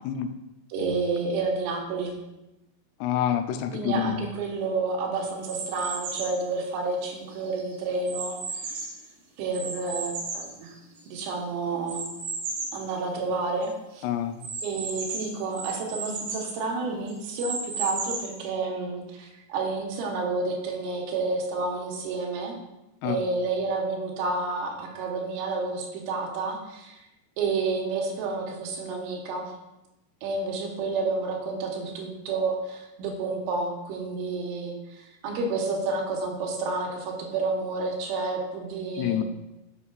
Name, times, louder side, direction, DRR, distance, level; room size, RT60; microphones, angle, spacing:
voice 1, 0.7-2.2 3.7-8.8 9.4-10.7 11.1-12.1 12.7-14.1 14.6-22.6 23.0-27.0 27.4-29.5 30.2-39.2, right 3 dB, 85° right, 1 dB, 3.5 m, -30 dB
voice 2, 3.0-4.2 14.0-14.4 23.0-23.2 39.0-39.2, left 10 dB, 85° left, 6 dB, 2.4 m, -27 dB
sound 1, 5.5-6.4 7.0-9.1 9.5-11.2 11.9-12.8 13.3-13.4 13.6-13.7 14.4-16.5 17.1-18.4, right 4 dB, 65° right, 2.2 m, -34 dB
12.5 x 5.5 x 2.4 m, 0.93 s
omnidirectional pair, 5.4 m